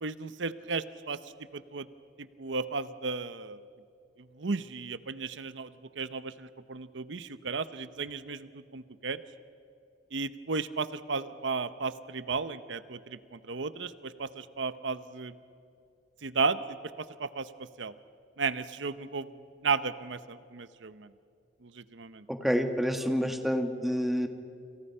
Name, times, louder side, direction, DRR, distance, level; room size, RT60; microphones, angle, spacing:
voice 1, 0.0-1.2 1.5-1.9 2.4-3.6 4.4-9.2 10.1-15.3 16.2-17.9 18.4-19.3 19.6-21.1 21.6-22.3, right 4 dB, 80° right, 14 dB, 0.8 m, -34 dB
voice 2, 22.3-24.3, equal, ahead, 6 dB, 1.5 m, -28 dB
29.5 x 27.0 x 5.6 m, 2.5 s
head